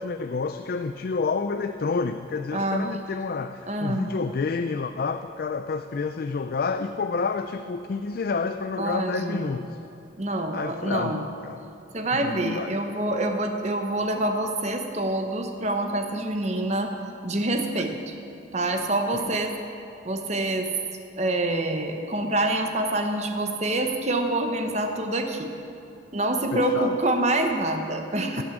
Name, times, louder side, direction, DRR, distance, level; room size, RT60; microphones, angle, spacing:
voice 1, 0.0-9.8 10.5-11.7 12.1-12.8 19.1-19.3 26.5-27.0 28.4-28.5, left 4 dB, 50° left, 9 dB, 0.3 m, -29 dB
voice 2, 2.5-2.9 3.7-4.1 8.8-9.5 10.2-11.2 11.9-16.9 17.2-18.1 18.5-19.5 20.0-20.7 21.2-25.5 26.1-28.4, right 1 dB, 35° right, 5 dB, 0.9 m, -26 dB
16.5 x 6.1 x 7.2 m, 2.9 s
head